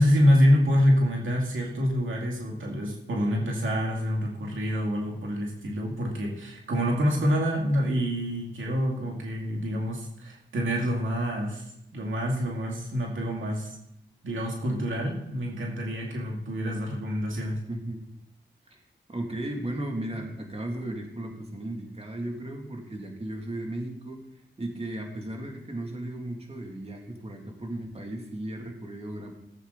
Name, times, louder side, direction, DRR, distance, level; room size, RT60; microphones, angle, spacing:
voice 1, 0.0-11.6 11.9-13.8 14.2-17.6, equal, 90° right, -1 dB, 2.3 m, -26 dB
voice 2, 17.7-18.0 18.7-18.8 19.1-24.2 24.6-29.3, right 1 dB, 30° right, 1 dB, 2.7 m, -35 dB
16.0 x 8.0 x 4.0 m, 0.81 s
cardioid pair, 60°, 20 cm